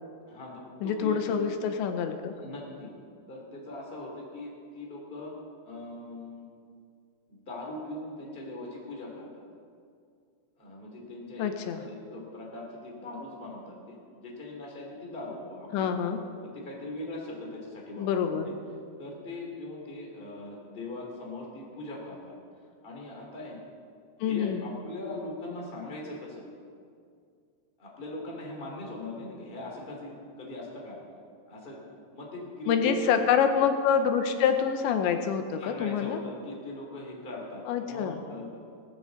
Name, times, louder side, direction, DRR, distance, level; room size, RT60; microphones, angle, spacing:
voice 1, 0.3-1.4 2.3-2.9 3.3-5.3 5.6-6.5 7.3-9.4 10.6-15.9 16.4-18.5 19.0-22.3 22.8-23.6 24.2-26.5 27.8-31.0 31.5-31.8 32.1-33.0 35.6-38.6, left 2 dB, 15° left, -2 dB, 1.9 m, -40 dB
voice 2, 0.8-2.3 11.4-11.8 15.7-16.2 18.0-18.5 24.2-24.7 32.7-36.2 37.7-38.2, left 7 dB, 85° left, 7 dB, 3.1 m, -26 dB
18.0 x 14.5 x 4.0 m, 2.3 s
omnidirectional pair, 5.2 m